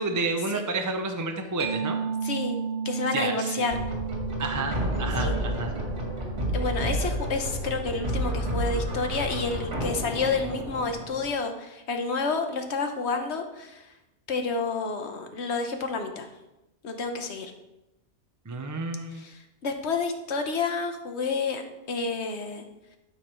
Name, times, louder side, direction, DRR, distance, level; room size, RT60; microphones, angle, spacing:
voice 1, 0.0-2.0 3.1-3.7 4.4-5.7 18.4-19.2, right 3 dB, 20° right, 5 dB, 0.6 m, -30 dB
Mallet percussion, 1.6-8.9, right 6 dB, 65° right, 1.3 m, -35 dB
voice 2, 2.2-2.6 2.8-3.7 5.2-5.3 6.5-13.9 14.3-16.3 16.8-17.5 19.2-19.3 19.6-21.6 21.9-22.6, left 4 dB, 70° left, 6 dB, 1.3 m, -29 dB
sound 1, 3.7-11.3, equal, 85° right, 2.4 m, -30 dB
12.5 x 4.9 x 4.5 m, 0.95 s
omnidirectional pair, 1.2 m